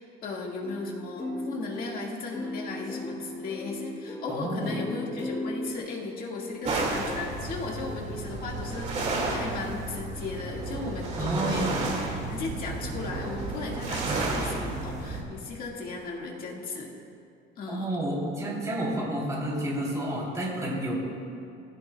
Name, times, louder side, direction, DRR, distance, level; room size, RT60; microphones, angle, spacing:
voice 1, 0.0-11.7 12.3-17.0 17.6-17.9, left 3 dB, 45° left, -1 dB, 1.9 m, -36 dB
sound 1, 0.6-5.8, left 1 dB, 15° left, 1.0 m, -37 dB
voice 2, 4.3-4.8 11.2-11.9 17.7-20.9, right 1 dB, 15° right, -4 dB, 3.2 m, -30 dB
sound 2, 6.6-15.2, right 2 dB, 35° right, 2.1 m, -32 dB
19.5 x 16.0 x 2.3 m, 2.5 s
cardioid pair, 160°, 20 cm